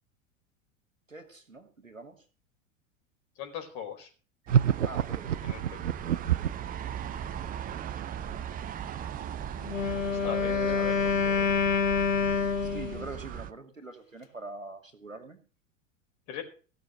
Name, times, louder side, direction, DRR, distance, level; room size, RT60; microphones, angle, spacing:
voice 1, 1.1-2.2 4.8-5.5 10.2-10.9 12.7-15.4, right 3 dB, 85° right, 5 dB, 2.5 m, -43 dB
voice 2, 3.4-4.1 5.4-5.6 10.1-10.9 11.2-11.5 16.3-16.4, left 9 dB, 45° left, 5 dB, 4.6 m, -39 dB
sound 1, 4.5-13.5, right 9 dB, 20° right, 0.8 m, -39 dB
sound 2, 4.5-6.7, right 9 dB, 70° right, 0.7 m, -26 dB
Wind instrument woodwind instrument, 9.6-13.1, left 5 dB, 85° left, 1.4 m, -27 dB
16.0 x 6.5 x 7.7 m, 0.38 s
figure-of-eight pair, 85°, 38 cm